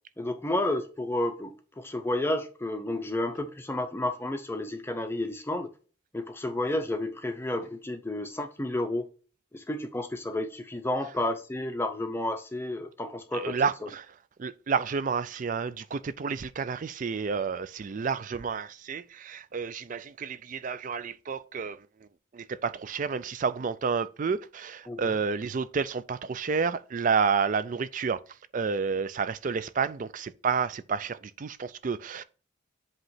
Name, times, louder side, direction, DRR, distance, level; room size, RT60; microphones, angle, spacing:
voice 1, 0.2-5.7 6.1-9.1 9.5-13.6 24.9-25.1, left 1 dB, 10° left, 0.6 m, -31 dB
voice 2, 13.3-14.0 14.4-21.8 22.3-28.2 28.5-32.2, right 5 dB, 40° right, 0.4 m, -30 dB
7.9 x 3.0 x 5.7 m
head